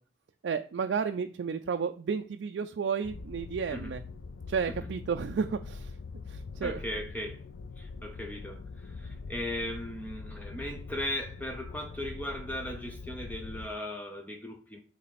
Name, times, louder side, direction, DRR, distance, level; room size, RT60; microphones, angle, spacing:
voice 1, 0.4-4.0 4.5-5.9 6.3-6.8, right 6 dB, 70° right, 0.3 m, -32 dB
sound 1, 3.0-13.7, left 4 dB, 85° left, 0.4 m, -43 dB
voice 2, 6.6-7.4 7.8-14.8, left 1 dB, 10° left, 0.5 m, -38 dB
8.5 x 3.2 x 4.1 m
head